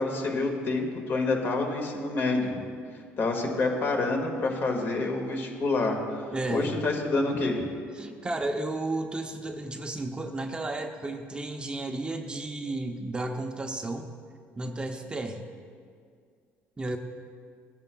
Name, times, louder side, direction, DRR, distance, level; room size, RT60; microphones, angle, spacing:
voice 1, 0.0-2.5 3.2-7.7, left 3 dB, 45° left, 2 dB, 1.8 m, -28 dB
voice 2, 6.3-6.7 7.9-14.1 14.6-15.5 16.8-17.0, right 2 dB, 20° right, 5 dB, 0.6 m, -33 dB
16.0 x 9.4 x 2.3 m, 2.1 s
cardioid pair, 105°, 5 cm